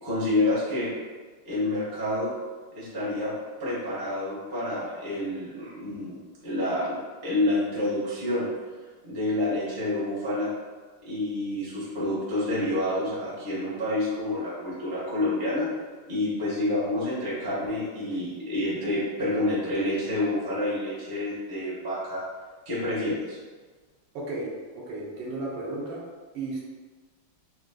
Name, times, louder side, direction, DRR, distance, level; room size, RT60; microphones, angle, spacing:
voice 1, 0.0-0.9 1.4-2.3 2.7-3.3 3.6-6.2 6.4-7.0 7.2-8.5 9.0-10.5 11.0-15.7 16.1-22.2 22.7-23.4, left 1 dB, 35° right, -9 dB, 0.3 m, -28 dB
voice 2, 24.1-26.0 26.3-26.6, right 2 dB, 75° right, -4 dB, 1.3 m, -34 dB
4.0 x 2.3 x 2.2 m, 1.4 s
omnidirectional pair, 2.3 m